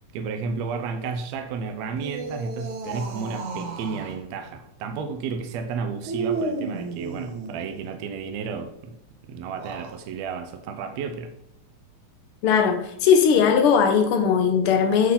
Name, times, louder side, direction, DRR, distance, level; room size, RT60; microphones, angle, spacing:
voice 1, 0.1-9.0 9.3-11.3, right 5 dB, 75° right, 6 dB, 1.8 m, -32 dB
sound 1, 1.9-4.2 6.0-7.8 9.4-10.0, right 3 dB, 60° right, 1.8 m, -32 dB
voice 2, 12.4-15.1, left 7 dB, 70° left, 6 dB, 1.3 m, -19 dB
8.6 x 3.9 x 5.7 m, 0.76 s
omnidirectional pair, 3.4 m